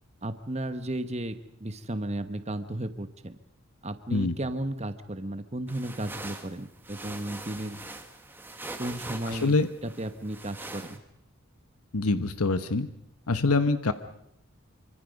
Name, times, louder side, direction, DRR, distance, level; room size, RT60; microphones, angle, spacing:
voice 1, 0.2-3.4 3.8-7.8 8.8-9.6 9.8-11.0, right 1 dB, 30° right, 10 dB, 1.1 m, -34 dB
sound 1, 5.7-11.0, right 2 dB, 10° right, 1.4 m, -42 dB
voice 2, 9.3-9.7 11.9-12.9 13.3-13.9, left 3 dB, 85° left, 11 dB, 1.1 m, -25 dB
26.0 x 25.0 x 5.3 m, 0.74 s
head